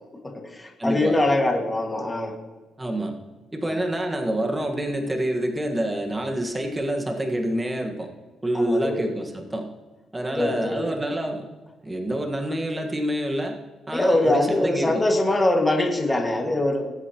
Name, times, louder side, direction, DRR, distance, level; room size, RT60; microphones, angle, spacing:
voice 1, 0.2-2.3 3.6-3.8 8.5-9.0 10.2-10.9 13.9-16.9, left 1 dB, 15° left, 1 dB, 1.9 m, -23 dB
voice 2, 0.8-1.2 2.8-3.2 3.5-8.1 8.4-9.7 10.1-11.5 11.8-13.6 13.9-15.0, right 1 dB, 15° right, 2 dB, 1.5 m, -27 dB
19.5 x 8.1 x 3.0 m, 1.2 s
cardioid pair, 90°, 0 cm